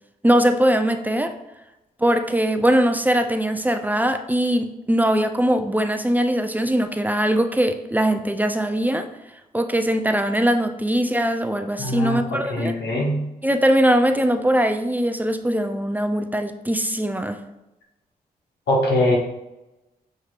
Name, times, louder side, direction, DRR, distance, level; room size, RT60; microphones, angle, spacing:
voice 1, 0.2-1.3 2.0-9.1 9.5-12.8 13.4-17.4, right 1 dB, 10° right, 6 dB, 0.4 m, -21 dB
voice 2, 11.8-12.2 12.5-13.2 18.7-19.2, left 1 dB, 85° left, -2 dB, 1.2 m, -21 dB
6.5 x 3.2 x 2.4 m, 0.97 s
cardioid pair, 60°, 17 cm